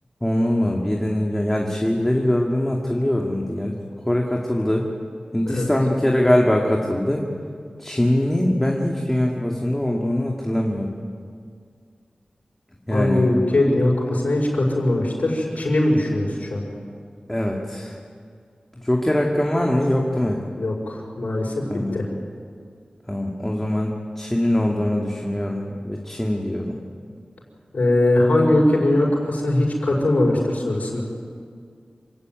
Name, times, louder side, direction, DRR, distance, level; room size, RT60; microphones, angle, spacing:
voice 1, 0.2-3.8 4.1-4.9 5.3-7.2 7.8-10.9 12.9-13.3 17.3-18.0 18.8-20.4 21.7-22.0 23.1-26.8, left 1 dB, 10° left, -1 dB, 2.3 m, -22 dB
voice 2, 12.9-16.7 20.6-21.6 21.9-22.1 27.7-31.0, left 1 dB, 85° left, -2 dB, 5.6 m, -20 dB
27.0 x 17.0 x 9.5 m, 2.1 s
wide cardioid pair, 85°, 3 cm